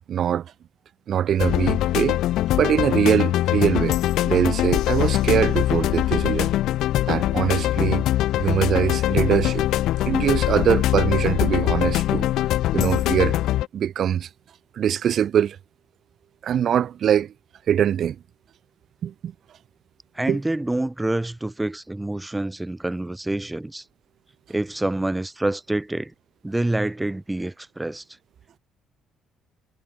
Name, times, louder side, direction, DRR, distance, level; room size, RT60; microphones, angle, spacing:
voice 1, 0.1-0.5 1.1-2.2 2.6-4.0 4.2-6.5 7.1-8.0 8.4-9.8 10.1-12.3 12.7-13.3 13.7-14.3 14.8-15.6 16.4-17.3 17.7-18.2 19.0-19.3 20.3-20.4, right 9 dB, 55° right, 2.1 m, -22 dB
sound 1, 1.4-13.7, left 14 dB, 75° left, 1.3 m, -22 dB
voice 2, 20.1-23.8 24.5-26.1 26.4-28.0, right 2 dB, 10° right, 6.0 m, -27 dB
cardioid pair, 90°, 0 cm